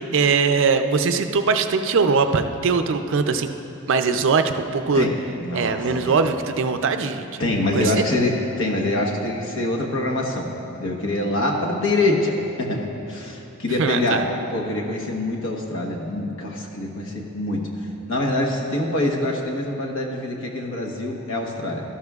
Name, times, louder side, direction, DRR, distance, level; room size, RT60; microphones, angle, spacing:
voice 1, 0.1-3.5 3.9-5.1 5.5-7.4 7.7-8.0 13.8-14.2, right 5 dB, 60° right, 8 dB, 0.5 m, -21 dB
voice 2, 5.4-6.1 7.4-10.5 10.8-14.2 14.5-17.6 18.1-21.8, left 1 dB, 65° left, 0 dB, 1.2 m, -25 dB
13.0 x 11.5 x 2.4 m, 2.8 s
head